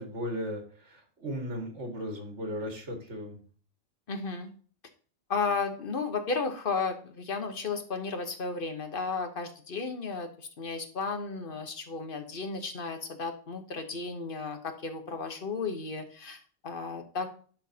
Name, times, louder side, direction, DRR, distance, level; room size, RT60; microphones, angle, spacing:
voice 1, 0.0-3.4, equal, 80° right, 4 dB, 2.1 m, -36 dB
voice 2, 4.1-4.5 5.3-17.3, left 4 dB, 50° left, 6 dB, 1.2 m, -34 dB
11.5 x 4.5 x 2.8 m, 0.44 s
omnidirectional pair, 1.2 m